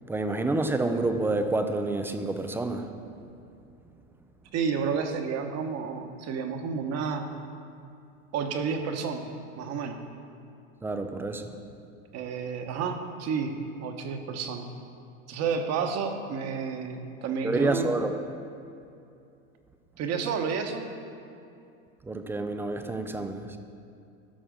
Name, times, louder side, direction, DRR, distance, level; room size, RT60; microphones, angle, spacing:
voice 1, 0.1-2.9 10.8-11.5 17.4-18.2 22.1-23.6, right 2 dB, 5° right, 7 dB, 0.3 m, -28 dB
voice 2, 4.5-7.3 8.3-9.3 9.6-10.0 12.1-14.7 15.3-17.9 20.0-20.8, right 6 dB, 40° right, 6 dB, 1.1 m, -30 dB
12.5 x 6.1 x 5.2 m, 2.6 s
supercardioid pair, 120°, 39 cm